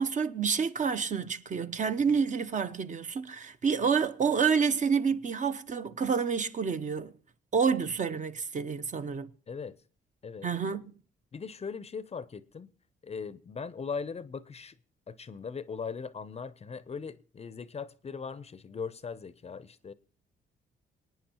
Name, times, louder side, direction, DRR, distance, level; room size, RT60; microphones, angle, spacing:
voice 1, 0.0-7.1 7.5-9.3 10.4-10.9, right 6 dB, 40° right, 0.7 m, -28 dB
voice 2, 9.5-9.8 10.2-10.5 11.3-12.7 13.0-14.8 15.1-19.9, left 5 dB, 30° left, 0.6 m, -39 dB
25.5 x 9.2 x 2.9 m
cardioid pair, 90°, 20 cm